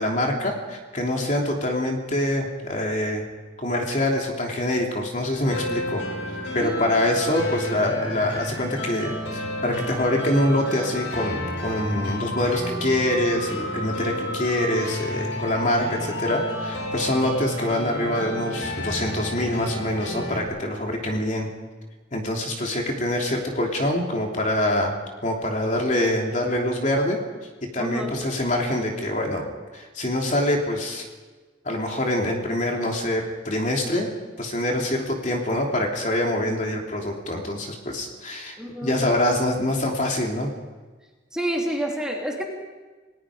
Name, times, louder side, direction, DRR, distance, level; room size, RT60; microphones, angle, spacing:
voice 1, 0.0-3.2 3.6-6.0 6.5-21.5 22.1-24.9 25.2-27.2 27.7-29.5 29.7-31.0 31.6-34.1 34.4-38.6 38.8-40.5, left 1 dB, 40° left, 1 dB, 3.1 m, -25 dB
sound 1, 5.4-20.4, left 1 dB, 90° left, 6.0 m, -31 dB
voice 2, 27.8-28.1 38.6-39.3 41.3-42.4, right 1 dB, 5° right, -1 dB, 2.9 m, -29 dB
29.5 x 19.0 x 5.1 m, 1.3 s
head